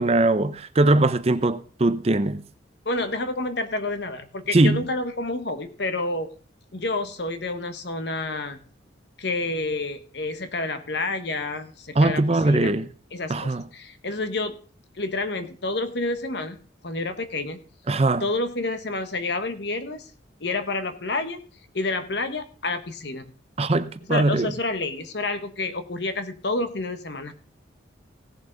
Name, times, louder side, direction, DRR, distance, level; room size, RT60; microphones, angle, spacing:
voice 1, 0.0-2.4 4.5-4.8 12.0-12.9 13.3-13.7 17.9-18.3 23.6-24.5, right 2 dB, 30° right, 0.5 m, -21 dB
voice 2, 2.8-6.3 6.7-8.6 9.2-12.7 13.1-14.5 15.0-16.6 16.8-17.6 18.2-20.1 20.4-21.4 21.7-23.3 24.1-27.3, left 2 dB, 60° left, 1.1 m, -29 dB
17.0 x 7.1 x 3.9 m
head